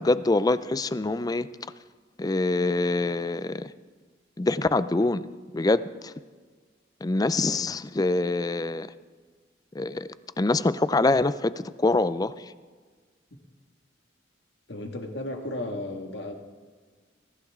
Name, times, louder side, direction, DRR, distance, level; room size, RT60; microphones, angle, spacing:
voice 1, 0.0-1.5 2.2-3.7 4.4-5.3 5.5-6.1 7.0-8.9 9.7-10.1 10.4-12.3, left 2 dB, 20° left, 15 dB, 0.4 m, -25 dB
voice 2, 14.7-16.3, left 1 dB, 65° left, 3 dB, 1.8 m, -34 dB
23.5 x 15.0 x 3.7 m, 1.5 s
head